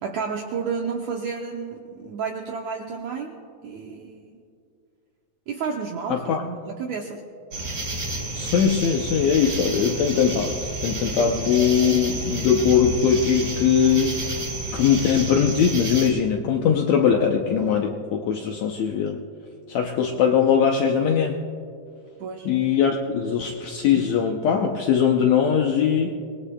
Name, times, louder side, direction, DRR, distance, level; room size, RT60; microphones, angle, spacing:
voice 1, 0.0-3.4 3.6-4.3 5.5-7.2 22.2-22.5, right 5 dB, 75° right, 1 dB, 1.7 m, -31 dB
voice 2, 6.1-6.4 8.3-14.4 14.7-19.2 19.7-21.4 22.4-26.1, left 7 dB, 90° left, 1 dB, 1.5 m, -21 dB
sound 1, 7.5-16.1, right 2 dB, 40° right, 1.0 m, -30 dB
25.5 x 19.5 x 2.3 m, 2.4 s
omnidirectional pair, 4.2 m